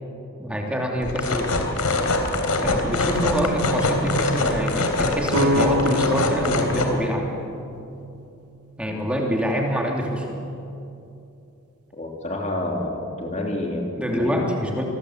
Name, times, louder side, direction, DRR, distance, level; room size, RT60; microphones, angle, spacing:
voice 1, 0.4-1.5 2.6-7.3 8.8-10.4 14.0-14.8, equal, 5° right, 0 dB, 2.9 m, -25 dB
sound 1, 1.0-6.9, left 2 dB, 85° left, 3.4 m, -24 dB
sound 2, 5.3-9.1, equal, 85° right, 1.0 m, -28 dB
voice 2, 11.9-14.5, left 1 dB, 30° left, 1 dB, 2.9 m, -29 dB
27.5 x 21.0 x 7.9 m, 2.7 s
head